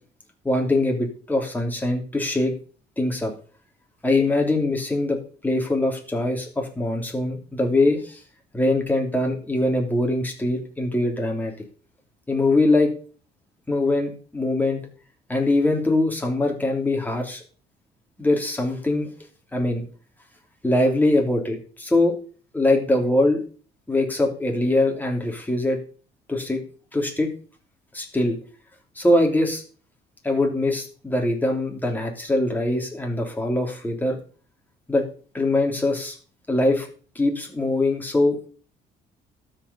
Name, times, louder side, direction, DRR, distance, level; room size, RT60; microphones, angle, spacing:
voice 1, 0.4-2.5 3.0-3.3 4.0-5.2 5.4-8.2 8.5-11.5 12.3-12.9 13.7-14.8 15.3-17.4 18.2-19.1 19.5-19.8 20.6-22.1 22.5-23.4 23.9-25.8 26.3-26.6 26.9-27.3 27.9-28.4 28.9-29.6 30.2-34.2 34.9-35.0 35.3-36.2 36.5-36.9 37.1-38.4, left 2 dB, 10° left, 2 dB, 3.3 m, -22 dB
13.0 x 5.3 x 7.1 m, 0.40 s
cardioid pair, 110°, 17 cm